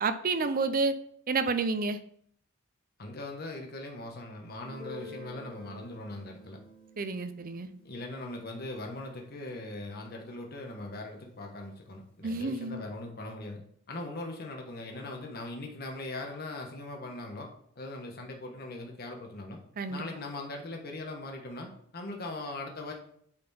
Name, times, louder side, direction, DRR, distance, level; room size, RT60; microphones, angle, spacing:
voice 1, 0.0-0.9 1.3-2.0 7.0-7.7 12.2-12.8 19.8-20.0, right 4 dB, 45° right, 11 dB, 0.5 m, -29 dB
voice 2, 3.0-6.6 7.8-13.6 13.9-17.5 17.8-19.6 19.9-22.9, left 2 dB, 50° left, 2 dB, 1.3 m, -40 dB
Guitar, 4.6-10.1, left 1 dB, 5° left, 2.0 m, -50 dB
8.7 x 4.3 x 4.2 m, 0.64 s
head